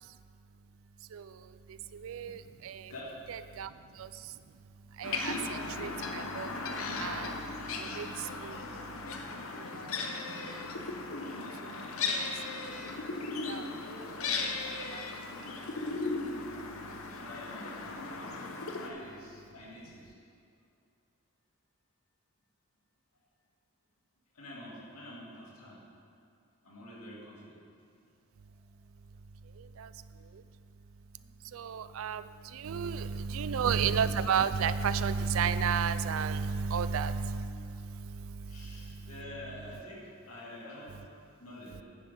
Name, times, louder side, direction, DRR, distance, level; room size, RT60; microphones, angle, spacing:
voice 1, 3.3-3.7 5.0-5.3 5.8-5.9 6.4-6.5 7.0-7.2 8.0-8.1 31.7-32.2 32.6-33.0 33.3-37.4, right 6 dB, 65° right, 14 dB, 0.4 m, -30 dB
sound 1, 5.0-18.9, left 3 dB, 70° left, 0.9 m, -37 dB
voice 2, 17.2-18.3 18.8-20.1 24.3-25.8 26.6-27.6 31.2-31.4 33.1-33.4 38.5-40.9 41.4-41.8, left 1 dB, 85° left, -5 dB, 2.6 m, -48 dB
10.5 x 9.9 x 3.8 m, 2.4 s
head